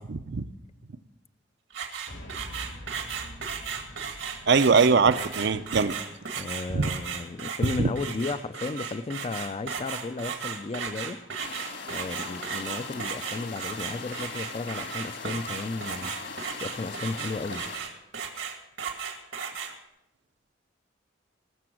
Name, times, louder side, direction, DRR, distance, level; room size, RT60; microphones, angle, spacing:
voice 1, 0.1-0.4 4.5-5.9 6.7-6.9 7.8-7.9, right 5 dB, 60° right, 13 dB, 0.6 m, -21 dB
sound 1, 1.7-19.7, right 6 dB, 85° right, 2.2 m, -35 dB
sound 2, 2.1-6.5, equal, 85° left, 2.9 m, -46 dB
voice 2, 6.4-11.2 11.9-16.1 16.6-17.7, left 3 dB, 30° left, 13 dB, 0.4 m, -34 dB
sound 3, 11.4-17.8, left 4 dB, 65° left, 1.9 m, -40 dB
20.0 x 6.9 x 6.2 m, 0.88 s
head